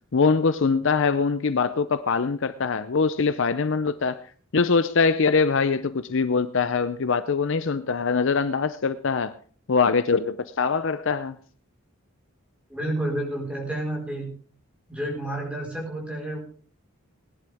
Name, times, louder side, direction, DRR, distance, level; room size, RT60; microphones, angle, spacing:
voice 1, 0.1-4.2 4.5-9.3 9.7-11.4, left 5 dB, 60° left, 0.6 m, -23 dB
voice 2, 12.7-14.3 14.9-16.4, right 1 dB, 5° right, 4.5 m, -30 dB
19.5 x 11.0 x 3.5 m
head